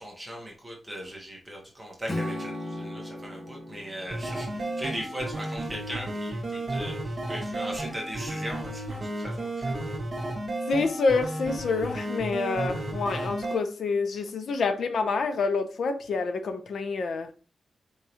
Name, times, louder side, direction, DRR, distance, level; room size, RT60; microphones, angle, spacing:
voice 1, 0.0-9.8, equal, 15° right, 1.5 m, -39 dB
Strum, 2.1-6.3, left 1 dB, 35° left, 1.5 m, -38 dB
sound 1, 4.1-13.6, right 1 dB, 40° right, 1.7 m, -33 dB
voice 2, 10.7-17.3, left 4 dB, 75° left, 0.7 m, -27 dB
4.6 x 3.6 x 2.9 m
wide cardioid pair, 120°, 0 cm